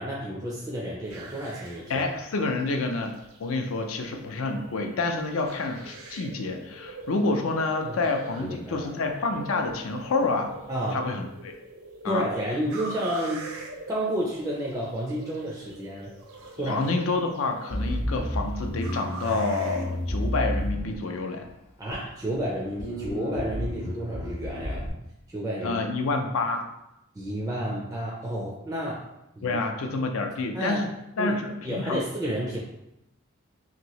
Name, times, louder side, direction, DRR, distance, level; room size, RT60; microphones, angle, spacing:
voice 1, 0.0-2.1 7.8-7.9 8.4-8.9 10.7-11.0 12.1-13.5 13.9-16.1 16.6-16.8 21.8-24.8 25.3-25.8 27.1-29.0 29.4-29.6 30.5-30.9 31.2-31.4 31.6-32.6, equal, 15° right, -4 dB, 0.4 m, -31 dB
sound 1, 1.0-20.7, right 3 dB, 85° right, 0.5 m, -44 dB
voice 2, 1.9-10.6 10.9-11.5 12.0-12.3 16.6-21.5 25.6-26.7 29.4-30.9 31.2-32.0, left 3 dB, 75° left, 4 dB, 0.4 m, -28 dB
Bass guitar, 17.7-21.3 21.9-22.4 22.8-24.9, left 1 dB, 35° left, 0.7 m, -31 dB
2.9 x 2.6 x 2.9 m, 0.87 s
head